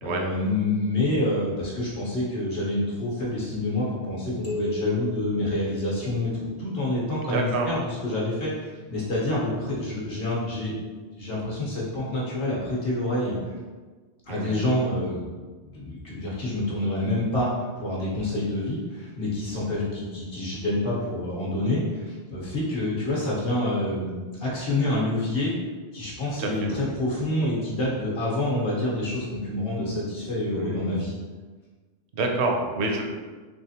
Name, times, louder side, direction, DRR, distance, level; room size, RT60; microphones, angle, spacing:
voice 1, 0.0-10.7 11.2-13.4 14.3-15.2 15.7-17.5 17.8-25.5 25.9-31.1, left 1 dB, 60° left, -6 dB, 1.2 m, -27 dB
sound 1, 4.4-6.9, left 1 dB, 40° left, 0.6 m, -35 dB
voice 2, 7.3-7.7 14.3-14.6 26.4-26.8 30.5-31.0 32.1-33.0, right 2 dB, 75° right, 2 dB, 0.9 m, -27 dB
3.5 x 3.1 x 2.8 m, 1.4 s
omnidirectional pair, 1.2 m